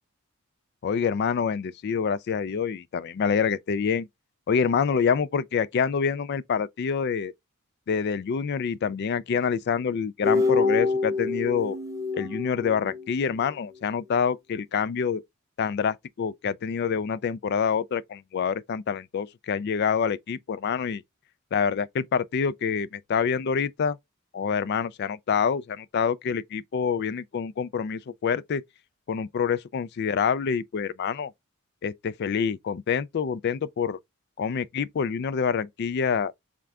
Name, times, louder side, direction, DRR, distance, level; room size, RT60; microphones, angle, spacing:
voice 1, 0.8-4.1 4.5-7.3 7.9-11.8 12.1-15.2 15.6-21.0 21.5-24.0 24.3-28.6 29.1-31.3 31.8-34.0 34.4-36.3, left 6 dB, 50° left, 0.3 m, -26 dB
sound 1, 10.2-13.5, left 3 dB, 15° right, 0.6 m, -26 dB
3.6 x 3.4 x 3.5 m
head